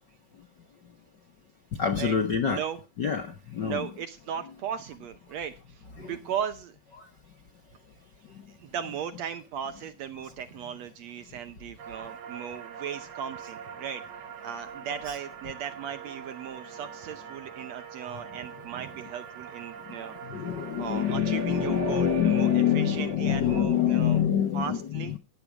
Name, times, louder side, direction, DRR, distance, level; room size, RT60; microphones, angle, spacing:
voice 1, 1.8-2.6 3.0-3.3 3.5-3.9 6.0-6.1 20.3-25.2, left 8 dB, 60° left, 6 dB, 1.1 m, -25 dB
voice 2, 2.5-2.8 3.6-6.8 8.6-14.0 14.4-20.2 20.8-24.2 24.5-25.2, right 8 dB, 70° right, 10 dB, 1.8 m, -37 dB
sound 1, 11.8-23.2, right 6 dB, 85° right, 3.5 m, -42 dB
16.0 x 8.7 x 4.9 m, 0.29 s
omnidirectional pair, 3.8 m